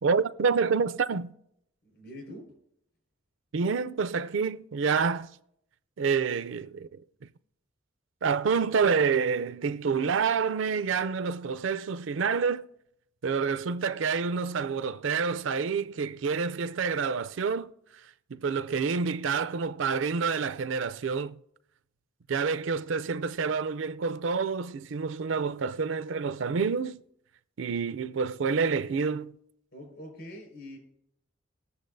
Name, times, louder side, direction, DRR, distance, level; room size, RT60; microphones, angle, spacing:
voice 1, 0.0-1.3 3.5-5.3 6.0-7.0 8.2-12.7 13.2-17.7 18.3-21.4 22.3-27.0 27.6-29.4, right 5 dB, 70° right, 0.4 m, -28 dB
voice 2, 1.8-2.5 29.7-30.8, left 1 dB, 65° left, 4.9 m, -44 dB
19.5 x 6.9 x 2.6 m
head